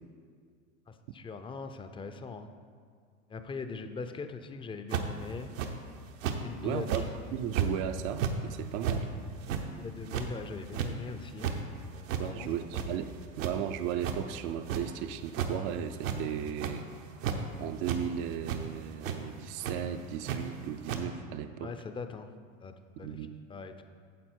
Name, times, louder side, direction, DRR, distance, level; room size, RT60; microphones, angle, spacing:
voice 1, 0.9-2.5 3.3-5.6 6.4-7.1 9.5-11.5 11.9-12.8 21.6-22.3 22.6-23.7, left 4 dB, 15° left, 8 dB, 0.5 m, -41 dB
sound 1, 4.9-5.2 5.6-5.7 6.2-6.4 6.8-7.1 7.5-7.7 8.1-8.3 8.8-9.0 9.4-9.6 10.0-10.3 10.7-10.9 11.3-11.6 12.1-12.2 12.6-13.1 13.4-13.5 14.0-14.2 14.7-14.8 15.3-15.5 15.9-16.2 16.5-16.8 17.2-17.4 17.8-18.0 18.4-18.6 19.0-19.2 19.6-19.7 20.2-20.4 20.9-21.0, right 8 dB, 80° right, 1.0 m, -32 dB
voice 2, 6.6-7.0 7.3-9.1 12.2-13.1 13.4-16.8 17.6-21.7 23.0-23.4, right 10 dB, 50° right, 9 dB, 0.5 m, -35 dB
9.4 x 7.2 x 4.4 m, 2.1 s
hypercardioid pair, 100°, 39 cm